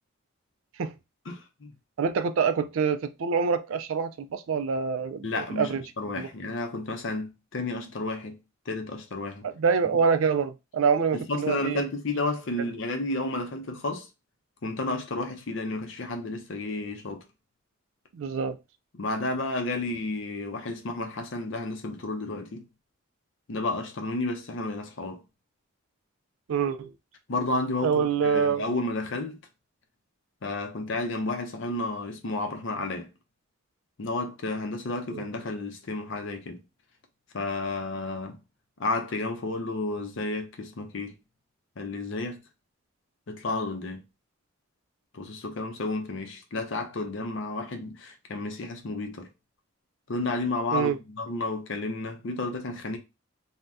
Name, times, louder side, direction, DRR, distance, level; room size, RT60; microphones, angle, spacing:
voice 1, 1.3-1.7 5.2-5.7 6.0-8.4 8.7-9.5 11.1-14.1 14.6-17.2 18.9-22.6 23.5-25.2 27.3-29.4 30.4-33.1 34.0-36.6 37.3-38.4 38.8-41.1 41.8-42.4 43.3-44.0 45.1-49.3 50.1-53.0, left 2 dB, 60° left, 0.6 m, -31 dB
voice 2, 2.0-5.8 6.2-6.3 9.4-11.9 18.1-18.6 26.5-26.9 27.8-28.7 35.1-35.2 50.7-51.0, right 6 dB, 70° right, 0.3 m, -26 dB
2.6 x 2.1 x 3.4 m
head